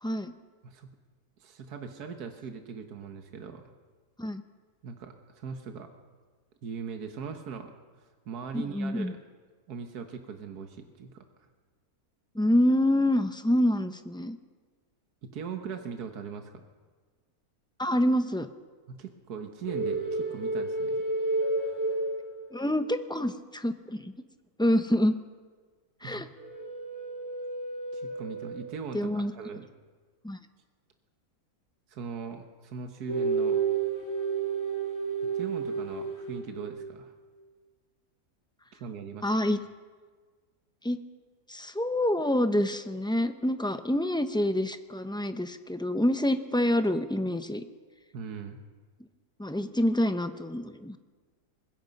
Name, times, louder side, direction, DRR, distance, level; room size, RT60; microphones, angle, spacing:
voice 1, 0.0-0.3 4.2-4.4 8.5-9.1 12.3-14.4 17.8-18.5 22.5-24.1 24.6-25.2 26.0-26.3 28.9-29.3 30.2-30.4 39.2-39.6 40.8-41.0 41.5-47.6 49.4-51.0, left 1 dB, 5° left, 9 dB, 0.4 m, -27 dB
voice 2, 1.4-3.6 4.8-5.9 6.6-7.7 8.0-9.2 9.7-11.3 15.2-16.6 18.9-21.0 26.0-26.3 27.9-29.7 31.9-33.6 35.3-37.1 38.7-39.3 48.1-48.6, right 6 dB, 80° right, 5 dB, 1.8 m, -40 dB
sound 1, 19.7-22.9 26.4-29.0 33.1-36.9, right 4 dB, 60° left, 3.5 m, -31 dB
24.5 x 20.5 x 5.4 m, 1.5 s
omnidirectional pair, 1.6 m